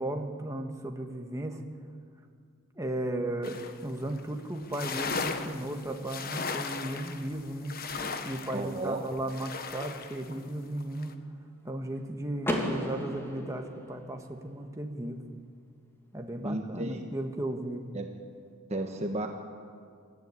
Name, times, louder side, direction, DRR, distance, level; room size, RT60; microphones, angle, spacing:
voice 1, 0.0-1.6 2.8-11.1 11.6-15.2 16.1-17.9, right 1 dB, 15° right, 3 dB, 1.5 m, -35 dB
sound 1, 3.4-3.8 4.1-4.2 4.5-10.3 10.8-11.1, left 4 dB, 40° left, 1.3 m, -37 dB
voice 2, 8.5-9.0 16.4-17.0 17.9-18.1 18.7-19.3, right 1 dB, 30° right, 3 dB, 1.3 m, -33 dB
Car / Door, 12.4-14.4, equal, 10° left, 2.3 m, -34 dB
24.5 x 14.0 x 9.8 m, 2.2 s
head